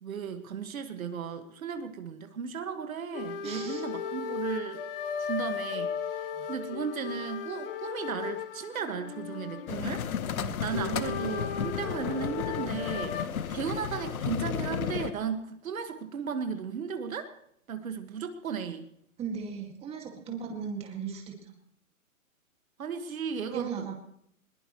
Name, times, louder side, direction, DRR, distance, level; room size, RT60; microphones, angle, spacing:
voice 1, 0.0-4.8 5.2-10.1 10.6-13.2 13.5-17.3 17.7-18.9 22.8-23.7, right 6 dB, 70° right, 7 dB, 1.9 m, -35 dB
sound 1, 3.1-13.2, left 6 dB, 40° left, 1.2 m, -36 dB
voice 2, 3.4-3.8 6.3-6.5 10.4-10.6 19.2-21.5 23.5-23.9, right 6 dB, 15° right, 2 dB, 2.1 m, -37 dB
sound 2, 9.7-15.1, left 8 dB, 75° left, 1.1 m, -33 dB
21.0 x 20.0 x 3.2 m, 0.73 s
hypercardioid pair, 150°, 43 cm